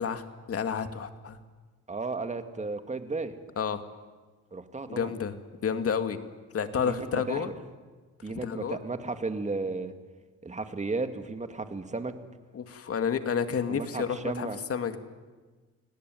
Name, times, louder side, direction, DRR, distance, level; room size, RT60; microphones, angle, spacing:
voice 1, 0.0-1.4 3.6-3.8 4.9-5.4 5.6-6.2 6.5-7.5 8.3-8.8 12.5-15.0, left 7 dB, 50° left, 8 dB, 2.2 m, -30 dB
voice 2, 1.9-3.4 4.5-5.1 6.8-7.5 8.2-9.9 10.4-12.2 13.7-14.6, right 3 dB, 25° right, 8 dB, 2.2 m, -34 dB
29.5 x 17.5 x 9.4 m, 1.3 s
cardioid pair, 90°, 30 cm